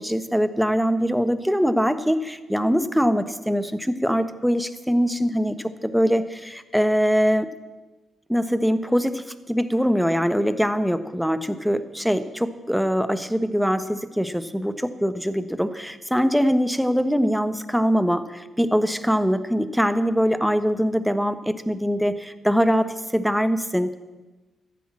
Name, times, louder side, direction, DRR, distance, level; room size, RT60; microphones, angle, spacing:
voice 1, 0.0-7.5 8.3-24.0, equal, ahead, 11 dB, 1.2 m, -23 dB
14.0 x 10.5 x 7.5 m, 1.2 s
hypercardioid pair, 40°, 0 cm